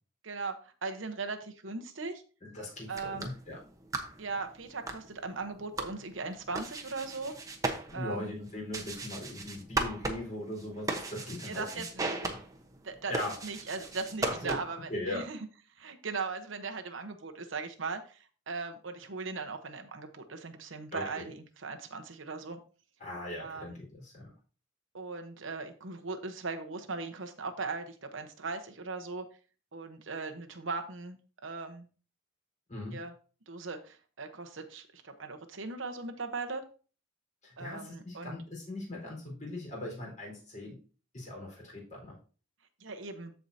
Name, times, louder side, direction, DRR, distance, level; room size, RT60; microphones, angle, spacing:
voice 1, 0.2-2.2 2.9-3.3 4.2-7.3 7.9-8.3 11.5-12.1 12.8-13.1 13.4-15.4 15.8-22.6 23.4-23.7 24.9-29.3 29.7-31.9 32.9-33.1 33.5-36.6 37.6-38.4 42.8-43.3, right 4 dB, 70° right, 6 dB, 1.0 m, -39 dB
voice 2, 2.4-3.6 7.9-11.7 12.2-12.3 13.1-13.4 14.2-14.6 14.9-15.2 20.9-21.3 23.0-24.3 32.7-33.0 37.4-40.8 41.1-42.1, left 1 dB, 40° left, -2 dB, 4.3 m, -39 dB
sound 1, 2.8-14.9, right 3 dB, 15° right, 1.0 m, -38 dB
14.0 x 4.7 x 2.8 m, 0.37 s
head